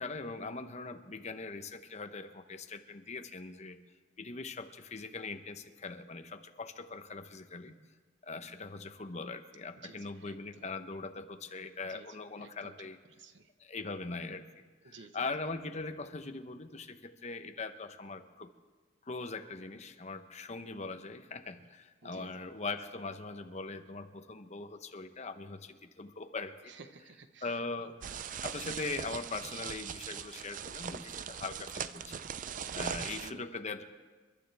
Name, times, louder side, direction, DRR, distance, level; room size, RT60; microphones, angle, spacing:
voice 1, 0.0-3.8 4.2-7.7 8.2-13.0 13.6-18.5 19.0-26.7 27.4-28.0 28.4-32.3 32.7-33.8, left 3 dB, 35° left, 7 dB, 0.9 m, -41 dB
voice 2, 9.8-10.7 11.8-13.5 14.8-15.3 21.6-21.7 22.0-22.3 26.6-28.7 32.3-33.6, right 4 dB, 65° right, 9 dB, 1.0 m, -55 dB
sound 1, 28.0-33.3, right 7 dB, 45° right, 0.4 m, -40 dB
28.5 x 12.0 x 3.4 m, 1.4 s
head